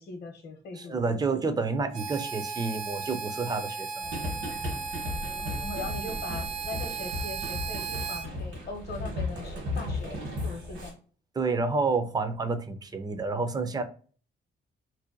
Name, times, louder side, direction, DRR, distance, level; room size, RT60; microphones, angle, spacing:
voice 1, 0.0-1.0 5.4-11.0, left 3 dB, 55° left, 4 dB, 0.7 m, -40 dB
voice 2, 0.8-4.0 11.4-13.8, right 4 dB, 20° right, 9 dB, 0.4 m, -29 dB
Harmonica, 1.9-8.3, right 5 dB, 85° right, 0.7 m, -36 dB
sound 1, 4.0-10.9, left 2 dB, 70° right, 1.2 m, -35 dB
2.6 x 2.1 x 2.5 m, 0.41 s
cardioid pair, 90°, 20 cm